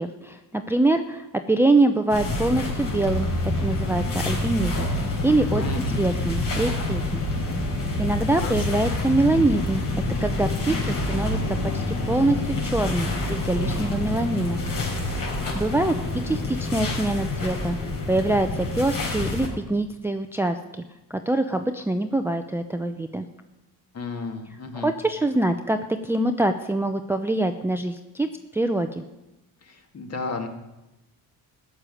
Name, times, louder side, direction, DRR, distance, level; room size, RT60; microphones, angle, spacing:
voice 1, 0.0-3.3 3.6-4.9 5.2-5.6 6.0-7.2 8.0-14.6 15.5-17.8 18.1-20.8 21.1-23.3 24.7-28.3 28.5-29.0, right 2 dB, 5° right, 7 dB, 0.6 m, -24 dB
sound 1, 2.1-19.5, left 2 dB, 60° left, 4.2 m, -27 dB
voice 2, 5.6-6.0 8.4-8.8 23.9-24.9 29.6-30.5, left 3 dB, 40° left, 4 dB, 2.2 m, -33 dB
14.0 x 6.8 x 9.9 m, 0.99 s
cardioid pair, 110°, 38 cm